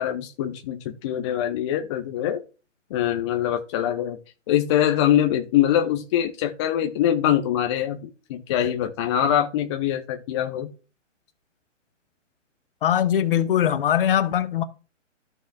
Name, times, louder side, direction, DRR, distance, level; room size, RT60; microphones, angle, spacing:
voice 1, 0.0-2.4 2.9-4.2 4.5-10.7, left 11 dB, 25° left, 0.6 m, -23 dB
voice 2, 12.8-14.6, left 10 dB, 45° left, 0.9 m, -21 dB
14.0 x 6.2 x 2.3 m
hypercardioid pair, 135°, 38 cm